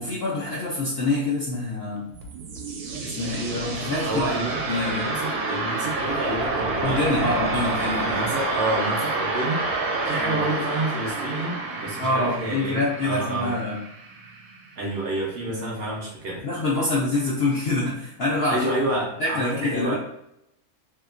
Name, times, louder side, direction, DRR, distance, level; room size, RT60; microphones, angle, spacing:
voice 1, 0.0-2.1 3.0-4.3 4.7-5.1 6.8-8.3 10.2-10.5 12.0-13.8 15.5-15.9 16.4-18.6 19.2-19.9, left 2 dB, 60° left, -6 dB, 0.7 m, -26 dB
sound 1, 2.0-14.8, right 3 dB, 85° right, 1.1 m, -29 dB
voice 2, 4.0-7.3 8.0-9.6 10.0-13.6 14.8-16.4 18.5-19.9, right 1 dB, 60° right, -3 dB, 0.7 m, -29 dB
2.8 x 2.3 x 2.5 m, 0.80 s
omnidirectional pair, 1.6 m